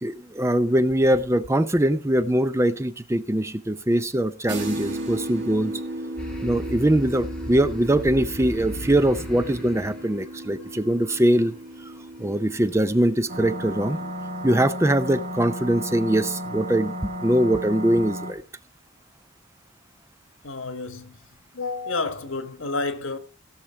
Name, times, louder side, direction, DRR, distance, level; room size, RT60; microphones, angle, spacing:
voice 1, 0.0-5.7 6.4-11.5 12.2-14.0 14.4-16.9 17.2-18.4, right 1 dB, 15° right, 0.5 m, -22 dB
sound 1, 4.5-14.1, right 1 dB, 60° right, 2.2 m, -36 dB
sound 2, 6.2-11.1, left 1 dB, 5° left, 2.5 m, -37 dB
sound 3, 13.3-18.3, equal, 35° right, 1.7 m, -33 dB
voice 2, 20.4-21.2 21.5-23.2, left 3 dB, 80° left, 1.5 m, -30 dB
16.5 x 6.5 x 4.4 m
head